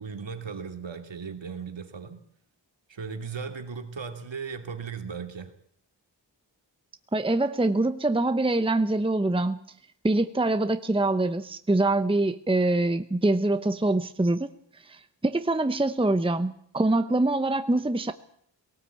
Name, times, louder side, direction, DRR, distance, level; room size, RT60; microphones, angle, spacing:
voice 1, 0.0-2.2 2.9-5.5, right 5 dB, 75° right, 2.6 m, -37 dB
voice 2, 7.1-9.6 10.0-14.5 14.8-18.1, right 2 dB, 10° right, 0.9 m, -24 dB
19.5 x 18.0 x 8.5 m
wide cardioid pair, 85°, 45 cm